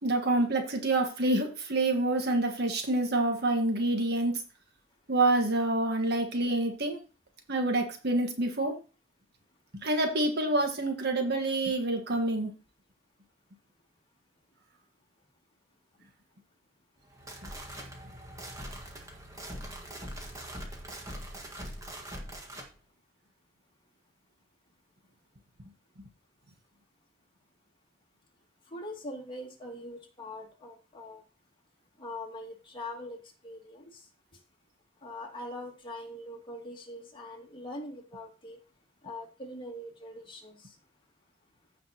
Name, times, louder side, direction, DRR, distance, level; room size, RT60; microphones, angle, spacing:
voice 1, 0.0-4.3 5.1-7.0 7.5-8.8 9.8-12.5, right 2 dB, 55° right, 4 dB, 1.5 m, -27 dB
sound 1, 17.0-22.7, equal, 15° right, 1.6 m, -42 dB
voice 2, 28.7-31.2 32.0-33.2 33.4-34.0 35.0-38.6 39.0-40.7, left 1 dB, 25° left, -1 dB, 2.3 m, -42 dB
15.0 x 5.1 x 2.9 m, 0.34 s
head